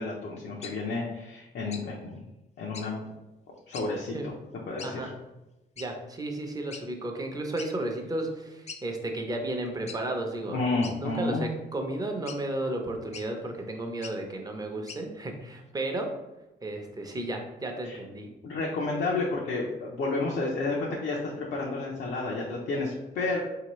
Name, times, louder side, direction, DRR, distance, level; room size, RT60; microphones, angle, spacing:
voice 1, 0.0-2.2 2.6-3.0 3.7-4.2 4.7-5.1 10.5-11.5 17.8-18.0 18.4-23.4, left 3 dB, 70° left, -3 dB, 0.7 m, -31 dB
sound 1, 0.6-0.8 1.7-1.9 2.7-2.9 3.7-3.9 4.8-4.9 5.8-5.9 6.7-6.9 7.6-7.7 8.1-8.2 8.7-8.8 9.9-10.0 10.8-11.3 12.2-12.4 13.1-13.3 13.9-14.2 14.9-15.0, left 5 dB, 40° left, 0.4 m, -42 dB
voice 2, 5.8-16.1 16.6-18.3, right 1 dB, 20° right, 3 dB, 0.7 m, -33 dB
4.4 x 2.8 x 3.1 m, 1.0 s
cardioid pair, 90°, 18 cm